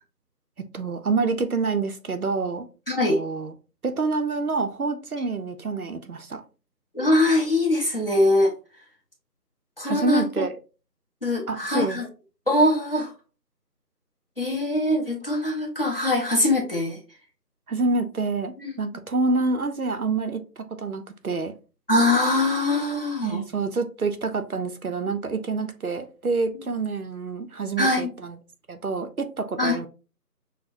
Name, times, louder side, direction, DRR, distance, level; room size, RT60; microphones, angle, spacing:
voice 1, 0.7-2.7 3.1-3.5 3.8-6.4 9.8-10.5 11.5-12.0 17.7-21.5 23.2-28.4 28.7-29.9, right 3 dB, 65° right, 8 dB, 0.6 m, -27 dB
voice 2, 2.9-3.2 6.9-8.5 9.8-10.2 11.2-12.1 12.5-13.1 14.4-17.0 18.6-18.7 21.9-23.4 27.8-28.1 29.6-29.8, left 1 dB, 35° left, -1 dB, 1.0 m, -22 dB
6.3 x 2.1 x 2.6 m, 0.33 s
figure-of-eight pair, 175°, 49 cm